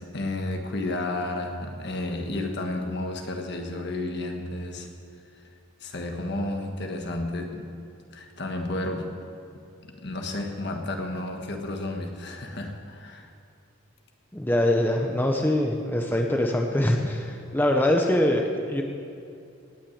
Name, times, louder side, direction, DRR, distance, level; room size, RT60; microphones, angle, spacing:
voice 1, 0.1-4.9 5.8-7.7 8.1-9.2 10.0-13.3, left 2 dB, 55° left, 3 dB, 1.5 m, -32 dB
voice 2, 14.3-18.8, left 1 dB, 10° left, 2 dB, 0.8 m, -23 dB
18.5 x 6.3 x 8.6 m, 2.5 s
head